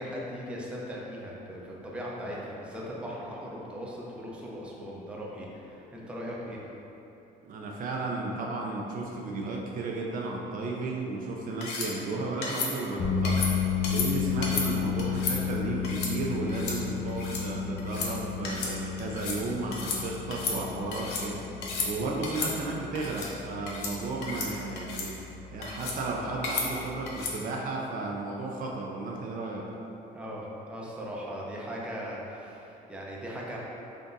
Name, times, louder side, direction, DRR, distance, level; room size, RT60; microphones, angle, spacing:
voice 1, 0.0-6.6 30.1-33.6, equal, 5° right, -5 dB, 0.6 m, -39 dB
voice 2, 7.4-29.7, right 3 dB, 55° right, -1 dB, 0.5 m, -34 dB
sound 1, 11.6-11.9 12.4-12.7 13.2-13.5 13.8-14.1 14.4-14.7 15.0-15.4 15.8-16.1 16.5-16.8 17.1-17.4 17.8-18.1 18.4-18.7 19.0-19.4 19.7-20.0 20.3-21.2 21.6-21.9 22.2-22.5 22.9-23.3 23.7-23.9 24.2-24.5 24.8-25.1 25.6-26.0 26.4-26.7 27.1-27.3, left 4 dB, 85° left, 0.6 m, -33 dB
sound 2, 13.0-27.3, left 7 dB, 50° left, 0.7 m, -33 dB
3.8 x 3.4 x 2.6 m, 3.0 s
cardioid pair, 110°, 17 cm